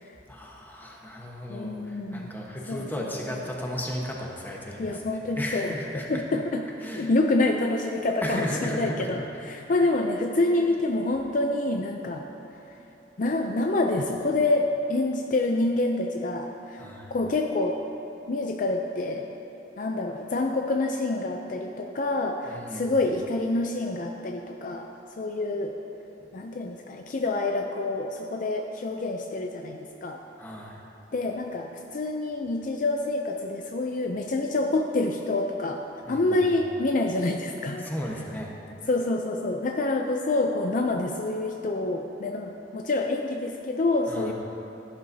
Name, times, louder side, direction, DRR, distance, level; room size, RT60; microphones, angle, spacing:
voice 1, 0.3-6.2 6.8-7.1 8.2-9.1 16.8-17.1 22.5-22.9 30.4-30.8 36.1-36.4 37.8-38.6 44.1-44.3, equal, 10° left, -2 dB, 1.2 m, -35 dB
voice 2, 1.5-2.4 2.7-3.4 4.8-6.6 7.0-12.2 13.2-16.8 17.1-17.8 18.3-19.3 19.8-25.7 26.3-30.2 31.1-35.8 36.1-37.9 38.9-44.3, left 2 dB, 45° left, 3 dB, 0.4 m, -27 dB
14.0 x 11.5 x 2.8 m, 3.0 s
head